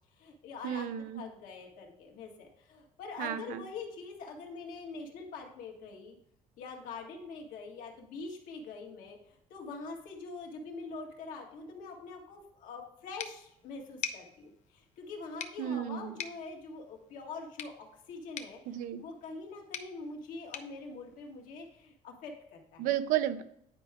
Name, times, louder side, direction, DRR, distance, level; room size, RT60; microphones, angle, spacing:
voice 1, 0.1-0.9 1.1-6.2 6.6-18.6 19.0-22.9, left 4 dB, 85° left, 1 dB, 1.7 m, -44 dB
voice 2, 0.6-1.2 3.2-3.6 15.6-16.2 18.7-19.0 22.8-23.4, right 11 dB, 85° right, 12 dB, 0.6 m, -32 dB
sound 1, 13.2-21.9, left 7 dB, 60° left, 0.7 m, -46 dB
9.7 x 4.7 x 3.6 m, 0.72 s
cardioid pair, 130°, 13 cm